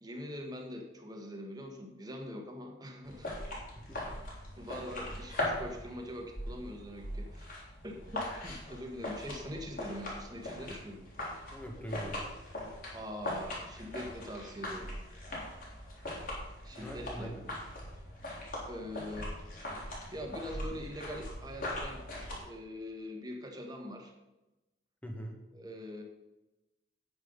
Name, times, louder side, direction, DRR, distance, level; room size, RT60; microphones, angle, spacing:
voice 1, 0.0-3.7 4.6-7.5 7.8-11.1 12.9-14.9 16.6-17.3 18.6-19.3 20.1-22.0 22.4-24.1 25.5-26.0, equal, 20° right, 2 dB, 1.5 m, -43 dB
sound 1, 3.0-22.4, left 1 dB, 50° left, 3.7 m, -40 dB
voice 2, 3.7-4.1 11.5-12.2 16.7-17.4 25.0-25.3, equal, 10° left, 1 dB, 1.6 m, -42 dB
9.1 x 8.8 x 5.5 m, 1.0 s
head